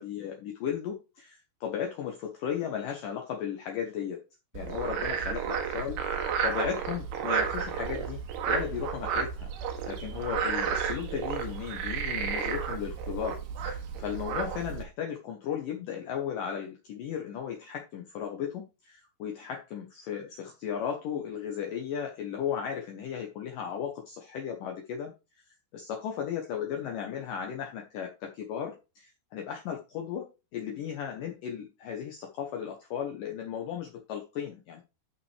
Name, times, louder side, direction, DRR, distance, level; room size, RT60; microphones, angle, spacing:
voice 1, 0.0-4.2 4.5-8.2 8.5-25.1 25.7-34.8, left 8 dB, 70° left, 3 dB, 2.3 m, -35 dB
Frog, 4.5-14.8, right 7 dB, 75° right, 3.5 m, -32 dB
11.0 x 5.9 x 3.3 m, 0.29 s
omnidirectional pair, 4.9 m